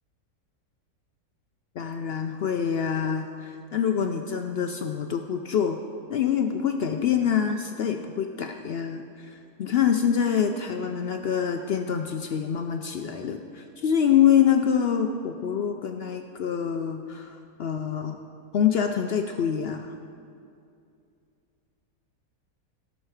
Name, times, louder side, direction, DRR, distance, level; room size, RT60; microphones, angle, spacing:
voice 1, 1.8-5.8 6.1-9.3 9.6-18.2 18.5-19.9, left 8 dB, 75° left, 5 dB, 0.5 m, -25 dB
16.5 x 6.5 x 4.8 m, 2.5 s
omnidirectional pair, 1.6 m